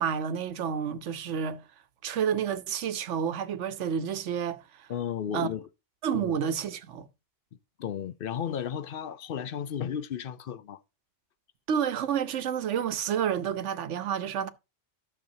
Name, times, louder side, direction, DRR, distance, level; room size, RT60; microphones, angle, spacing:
voice 1, 0.0-1.6 2.0-4.9 5.3-5.5 6.0-7.1 11.7-14.5, right 8 dB, 90° right, 1.1 m, -30 dB
voice 2, 4.9-5.7 6.1-6.4 7.8-10.8, left 8 dB, 60° left, 0.7 m, -34 dB
12.5 x 7.0 x 2.7 m
omnidirectional pair, 1.2 m